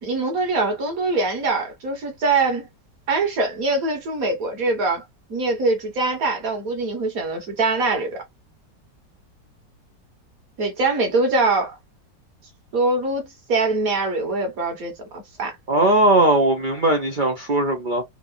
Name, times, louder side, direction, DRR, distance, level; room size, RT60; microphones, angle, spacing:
voice 1, 0.0-2.7 3.1-5.0 5.3-8.2 10.6-11.8 12.7-15.5, right 3 dB, 50° right, 1.8 m, -23 dB
voice 2, 15.7-18.0, right 2 dB, 80° right, 0.4 m, -18 dB
4.4 x 2.7 x 2.6 m
omnidirectional pair, 2.0 m